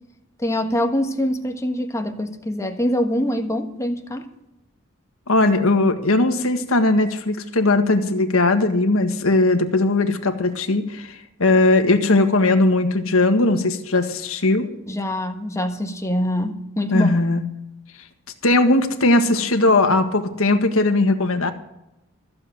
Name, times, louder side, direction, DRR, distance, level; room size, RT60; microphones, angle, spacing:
voice 1, 0.4-4.3 14.9-17.1, left 1 dB, 15° left, 1.4 m, -24 dB
voice 2, 5.3-14.7 16.9-17.4 18.4-21.5, left 2 dB, 75° left, 1.6 m, -18 dB
14.5 x 7.7 x 7.8 m
head